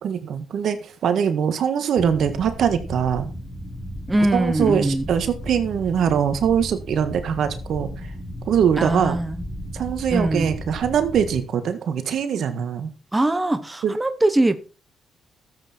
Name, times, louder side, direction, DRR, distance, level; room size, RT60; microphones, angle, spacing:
voice 1, 0.0-3.3 4.3-7.9 8.5-9.2 9.7-12.9 13.8-14.0, right 8 dB, 70° right, 1.6 m, -22 dB
sound 1, 1.9-11.4, equal, 15° left, 3.2 m, -35 dB
voice 2, 4.1-5.0 8.8-9.4 10.1-10.5 13.1-14.6, right 1 dB, 15° right, 1.0 m, -22 dB
13.0 x 8.2 x 4.4 m
supercardioid pair, 70°, 0 cm